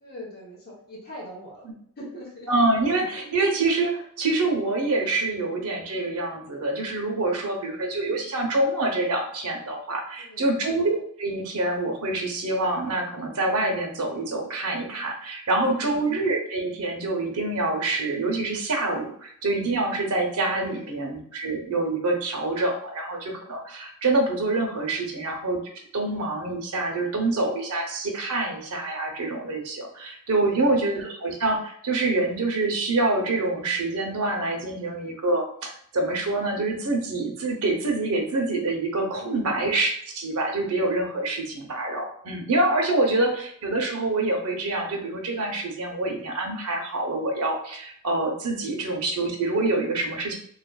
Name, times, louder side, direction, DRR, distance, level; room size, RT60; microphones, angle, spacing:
voice 1, 0.0-1.6 2.0-2.5 5.5-5.6 7.5-7.8 10.2-10.7 15.5-16.0 20.5-21.0 25.0-25.3 30.4-30.9 39.1-39.5 43.2-43.4 48.5-48.9, equal, 45° left, -3 dB, 0.8 m, -43 dB
voice 2, 2.5-25.6 25.9-50.3, right 2 dB, 80° right, 2 dB, 0.7 m, -26 dB
3.0 x 2.4 x 2.2 m, 0.63 s
head